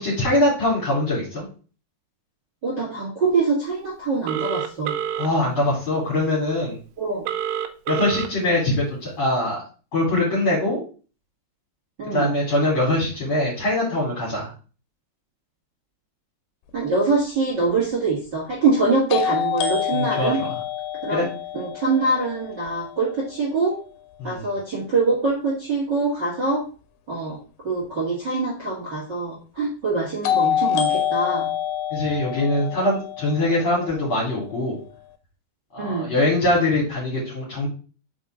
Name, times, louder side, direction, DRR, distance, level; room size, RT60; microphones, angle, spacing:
voice 1, 0.0-1.4 5.2-6.8 7.9-9.6 9.9-10.8 12.1-14.5 19.9-20.5 21.1-21.3 24.2-24.5 31.9-34.8 35.7-37.7, left 1 dB, 35° left, -6 dB, 2.8 m, -22 dB
voice 2, 2.6-4.9 7.0-7.2 12.0-12.3 16.7-20.4 21.0-21.3 21.5-23.8 24.2-26.6 27.1-27.4 27.6-31.5 35.8-36.1, right 3 dB, 45° right, -4 dB, 1.4 m, -24 dB
Telephone, 4.3-5.3 7.3-8.3, right 10 dB, 80° right, 2.8 m, -27 dB
sound 1, 17.1-17.2 19.1-23.0 30.2-34.3, left 10 dB, 85° left, 2.9 m, -26 dB
6.0 x 5.9 x 3.8 m, 0.37 s
omnidirectional pair, 5.0 m